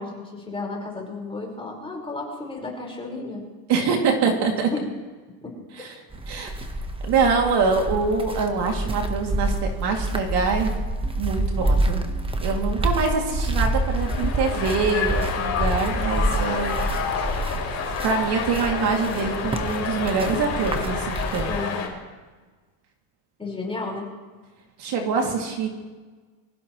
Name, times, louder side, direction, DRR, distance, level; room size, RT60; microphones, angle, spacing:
voice 1, 0.0-3.4 4.7-4.9 5.4-5.9 21.5-21.9 23.4-24.1, left 3 dB, 10° left, -2 dB, 5.0 m, -33 dB
voice 2, 3.7-4.7 5.7-5.9 6.3-6.5 7.0-10.7 11.2-12.1 12.4-16.8 18.0-21.6 24.8-25.7, right 5 dB, 50° right, 1 dB, 2.8 m, -24 dB
sound 1, 6.1-21.6, right 1 dB, 10° right, 1.2 m, -27 dB
sound 2, 13.8-21.9, left 5 dB, 30° left, 4.1 m, -29 dB
25.0 x 15.5 x 3.2 m, 1.4 s
supercardioid pair, 125°, 49 cm